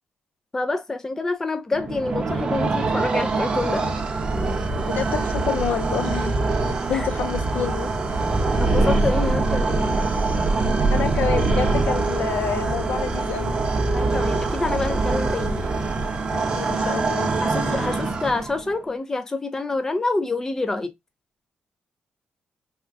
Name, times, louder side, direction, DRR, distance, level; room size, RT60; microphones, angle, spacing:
voice 1, 0.5-3.9 6.9-7.1 8.6-10.0 13.9-15.6 17.4-20.9, left 3 dB, 15° left, 0.3 m, -27 dB
sound 1, 1.7-18.7, right 3 dB, 30° right, 0.6 m, -23 dB
voice 2, 4.8-6.4 6.7-7.9 10.9-13.5 16.3-17.3, left 7 dB, 70° left, 0.6 m, -28 dB
3.5 x 2.1 x 2.5 m
wide cardioid pair, 155°, 3 cm